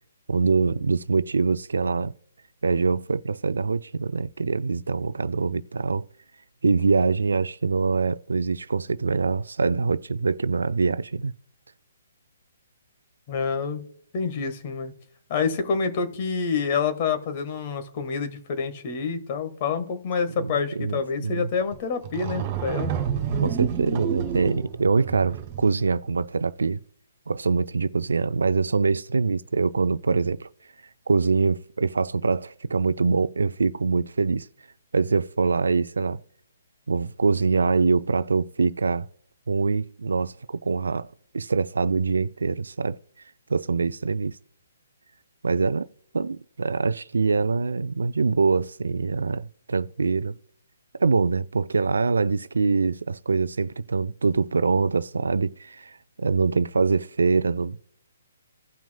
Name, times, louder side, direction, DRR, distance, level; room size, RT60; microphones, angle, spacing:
voice 1, 0.3-2.1 2.6-6.1 6.6-11.3 20.4-21.5 23.4-26.8 27.3-30.5 31.1-34.5 34.9-36.2 36.9-39.1 39.5-43.0 43.5-44.4 45.4-45.9 46.1-50.3 51.0-57.9, right 4 dB, 75° right, 0.4 m, -24 dB
voice 2, 13.3-13.8 14.1-14.9 15.3-22.9, left 5 dB, 40° left, 1.3 m, -27 dB
sound 1, 21.7-21.8 22.0-25.8, right 8 dB, 35° right, 2.1 m, -29 dB
16.5 x 6.0 x 2.2 m
figure-of-eight pair, 135°, 0 cm